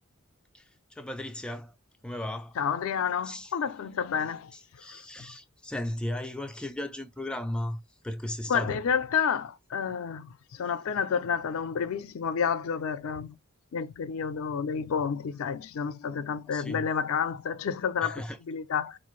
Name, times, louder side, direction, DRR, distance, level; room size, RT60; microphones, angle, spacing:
voice 1, 0.5-1.7 2.0-2.6 3.2-3.5 4.5-8.8 16.5-16.8 18.0-18.4, left 1 dB, 5° left, 0.3 m, -36 dB
voice 2, 2.6-4.5 4.9-5.0 8.5-13.4 13.7-19.0, left 7 dB, 75° left, 0.4 m, -30 dB
4.3 x 2.4 x 3.0 m
head